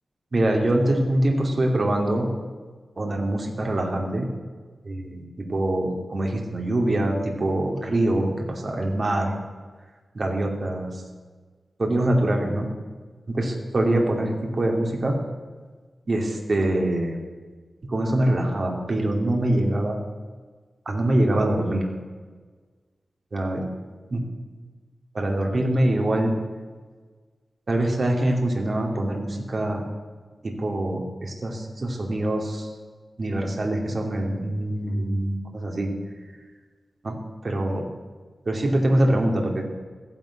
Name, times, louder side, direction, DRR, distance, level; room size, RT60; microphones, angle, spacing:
voice 1, 0.3-2.3 3.0-4.3 4.8-9.3 10.1-11.0 11.8-12.7 13.3-15.2 16.1-17.2 17.8-20.0 20.9-21.9 23.3-23.6 24.1-24.2 25.1-26.3 27.7-29.8 30.4-32.7 33.2-35.9 37.0-37.2 37.4-37.9 38.5-39.6, right 1 dB, 40° right, 1 dB, 2.6 m, -24 dB
14.5 x 11.0 x 8.5 m, 1.5 s
wide cardioid pair, 140°, 0 cm